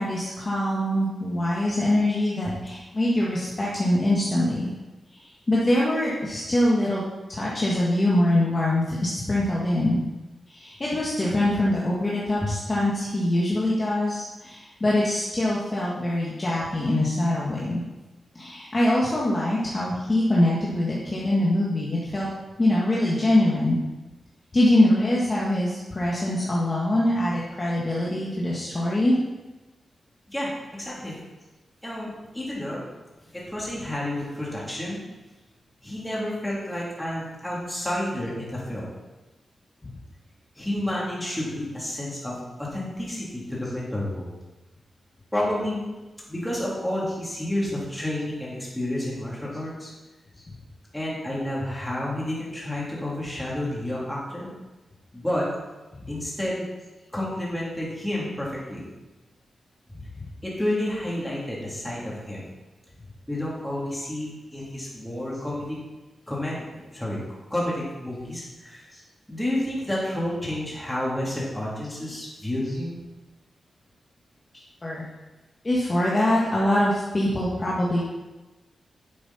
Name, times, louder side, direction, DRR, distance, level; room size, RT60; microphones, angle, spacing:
voice 1, 0.0-4.7 5.1-7.0 7.3-10.0 10.5-17.8 18.4-22.3 22.6-23.8 24.5-29.2 60.2-60.3 74.8-75.0 75.6-78.0, left 1 dB, 25° left, -6 dB, 1.8 m, -23 dB
voice 2, 30.3-31.1 31.8-32.8 33.3-35.0 35.8-38.9 40.5-44.3 45.3-45.9 46.3-49.9 50.9-54.5 55.1-55.5 56.1-56.7 57.1-58.8 60.4-62.4 63.3-65.6 66.3-67.2 67.5-68.9 69.3-73.0, left 1 dB, 5° left, -6 dB, 3.4 m, -30 dB
10.5 x 7.9 x 4.3 m, 1.1 s
wide cardioid pair, 130°, 0 cm